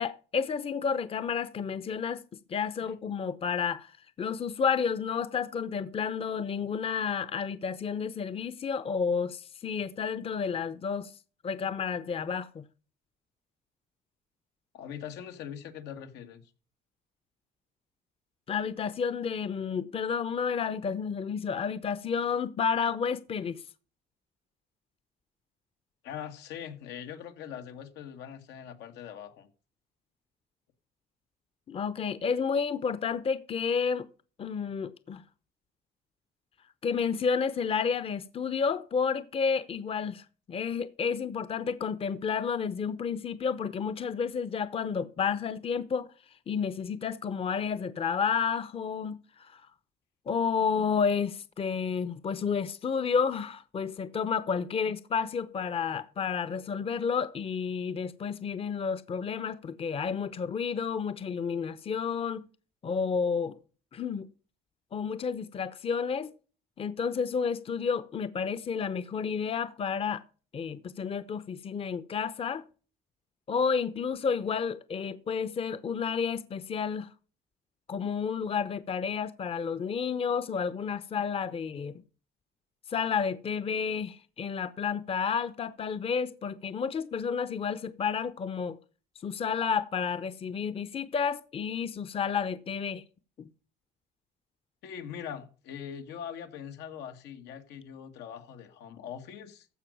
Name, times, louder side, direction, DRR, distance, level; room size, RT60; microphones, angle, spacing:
voice 1, 0.0-2.2 2.5-3.9 4.2-11.1 11.4-12.6 18.5-23.6 31.7-34.1 34.4-35.2 36.8-46.1 46.5-49.6 50.3-62.4 62.8-63.6 63.9-64.3 64.9-66.3 66.8-70.2 70.5-72.6 73.5-77.1 77.9-82.0 82.9-88.8 89.2-93.0 93.4-93.5, left 6 dB, 35° left, 0.8 m, -31 dB
voice 2, 14.7-16.4 26.0-29.5 94.8-99.7, left 8 dB, 85° left, 1.7 m, -42 dB
15.0 x 5.3 x 6.2 m
cardioid pair, 110°, 17 cm